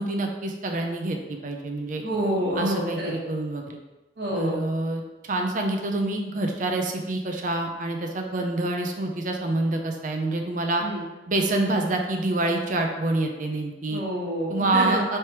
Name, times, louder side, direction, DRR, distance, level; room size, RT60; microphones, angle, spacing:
voice 1, 0.0-2.0 2.6-3.8 4.3-5.0 5.3-10.8 11.3-14.0 14.5-15.2, right 2 dB, 45° right, 3 dB, 0.5 m, -27 dB
voice 2, 2.0-3.1 4.2-4.6 10.8-11.0 13.9-15.0, right 1 dB, 65° right, -5 dB, 1.3 m, -27 dB
3.3 x 2.9 x 4.5 m, 1.1 s
head